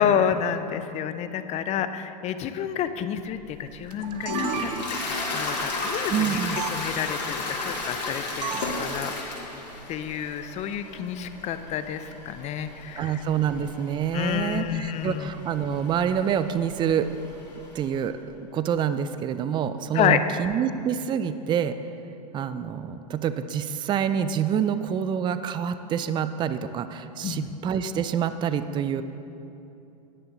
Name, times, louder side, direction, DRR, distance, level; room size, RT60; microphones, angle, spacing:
voice 1, 0.0-9.1 9.9-13.2 14.1-15.3 19.9-20.2 27.2-27.5, left 9 dB, 35° left, 11 dB, 0.6 m, -29 dB
Toilet flush, 3.3-18.0, left 2 dB, 85° left, 1.9 m, -34 dB
sound 1, 3.9-5.2 6.6-6.7 8.4-8.8, right 8 dB, 75° right, 0.7 m, -33 dB
voice 2, 6.1-6.6 13.0-17.1 17.7-21.7 22.3-29.0, right 8 dB, 20° right, 11 dB, 0.4 m, -27 dB
10.5 x 9.9 x 3.9 m, 2.8 s
hypercardioid pair, 110°, 21 cm